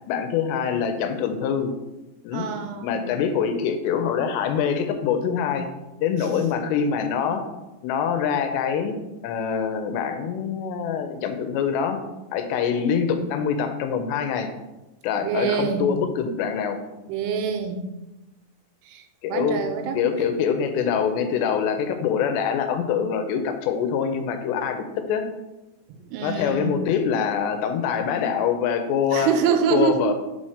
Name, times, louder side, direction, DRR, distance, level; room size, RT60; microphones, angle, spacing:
voice 1, 0.1-1.7 2.2-2.5 2.8-5.7 6.0-7.5 7.8-9.0 9.2-12.0 12.3-14.5 15.0-16.8 19.2-19.6 19.9-25.3 26.2-29.3 29.7-30.1, left 7 dB, 85° left, 7 dB, 2.8 m, -24 dB
voice 2, 2.3-3.0 15.2-15.9 17.1-17.8 18.9-19.0 19.3-20.0 26.1-26.8 29.1-30.1, right 7 dB, 85° right, 6 dB, 2.7 m, -25 dB
5.7 x 4.2 x 4.9 m, 1.0 s
omnidirectional pair, 4.9 m